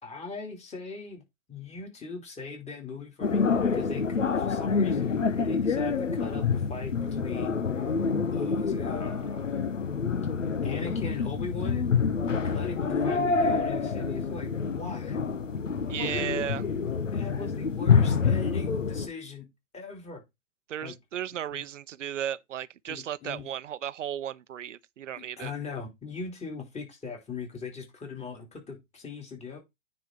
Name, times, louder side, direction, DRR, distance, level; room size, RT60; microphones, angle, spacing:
voice 1, 0.0-1.2 1.5-5.2 5.4-7.6 8.3-9.5 10.6-11.9 12.4-15.2 16.0-16.3 17.1-19.5 19.7-20.2 20.8-20.9 21.5-21.6 22.9-23.5 25.2-29.6, left 4 dB, 20° left, 3.7 m, -40 dB
sound 1, 3.2-19.1, left 5 dB, 90° left, 1.0 m, -27 dB
voice 2, 15.9-16.7 20.7-25.5, right 10 dB, 80° right, 0.7 m, -35 dB
9.5 x 4.1 x 4.8 m
hypercardioid pair, 110°, 37 cm